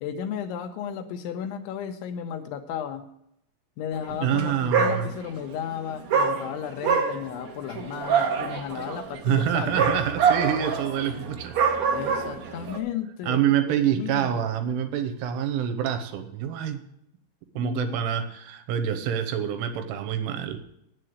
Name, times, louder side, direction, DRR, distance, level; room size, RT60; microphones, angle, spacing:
voice 1, 0.0-3.1 3.8-9.8 11.9-14.5 17.6-18.0, left 8 dB, 80° left, 5 dB, 2.9 m, -34 dB
voice 2, 4.2-5.1 9.2-11.5 13.3-16.8 17.6-20.6, right 9 dB, 80° right, 8 dB, 3.4 m, -26 dB
Dog, 4.3-4.4 4.7-5.5 6.1-12.8, right 6 dB, 60° right, 1.9 m, -25 dB
9.7 x 7.7 x 7.9 m, 0.77 s
omnidirectional pair, 5.8 m